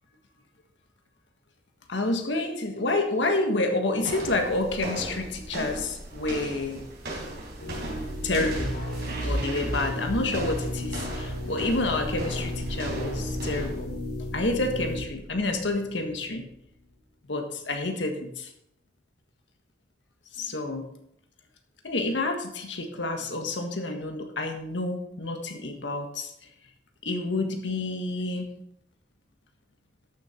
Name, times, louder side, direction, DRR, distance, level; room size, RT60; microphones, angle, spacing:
voice 1, 1.9-6.9 8.2-8.7 9.2-13.9 14.2-16.4 17.3-18.5 20.3-20.9 21.8-26.3 27.0-28.5, left 2 dB, 85° left, 4 dB, 1.6 m, -29 dB
sound 1, 4.0-13.9, right 1 dB, 65° right, 4.1 m, -37 dB
sound 2, 7.6-16.3, left 1 dB, 60° left, 3.8 m, -34 dB
12.5 x 6.6 x 4.4 m, 0.76 s
head